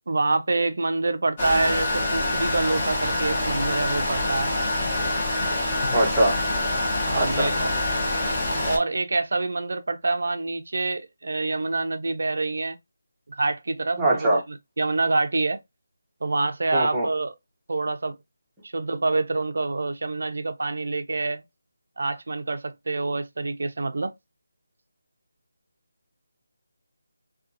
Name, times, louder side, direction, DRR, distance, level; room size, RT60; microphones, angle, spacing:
voice 1, 0.1-4.5 7.1-7.7 8.7-12.8 13.3-15.6 16.2-17.3 17.7-18.2 18.7-21.4 22.0-24.1, right 3 dB, 65° right, 0.4 m, -26 dB
sound 1, 1.4-8.8, left 1 dB, 25° left, 0.9 m, -25 dB
voice 2, 5.9-6.4 7.1-7.5 14.0-14.4 16.7-17.1, right 1 dB, 5° right, 0.6 m, -22 dB
2.5 x 2.3 x 2.4 m
figure-of-eight pair, 170°, 0 cm